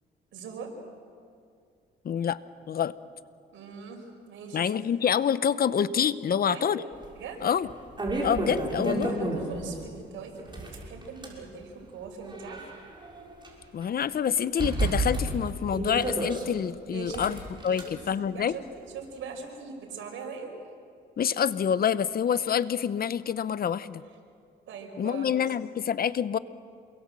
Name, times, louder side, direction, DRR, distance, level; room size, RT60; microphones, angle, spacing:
voice 1, 0.3-0.7 3.5-4.7 6.3-6.7 7.1-7.4 9.3-12.6 16.9-17.2 17.7-18.0 18.3-20.5 24.7-25.3, right 5 dB, 80° right, 2 dB, 5.7 m, -41 dB
voice 2, 2.0-2.4 2.7-2.9 4.5-6.8 7.4-7.7 8.2-9.1 13.7-18.6 21.2-24.0 25.0-26.4, left 8 dB, 50° left, 15 dB, 0.8 m, -27 dB
sound 1, 7.0-7.1 7.6-9.7 10.4-11.4 12.1-13.5 13.8-13.9 14.6-16.4 17.1-17.8, right 2 dB, 25° right, 6.1 m, -31 dB
28.0 x 22.5 x 7.7 m, 2.3 s
cardioid pair, 90°, 20 cm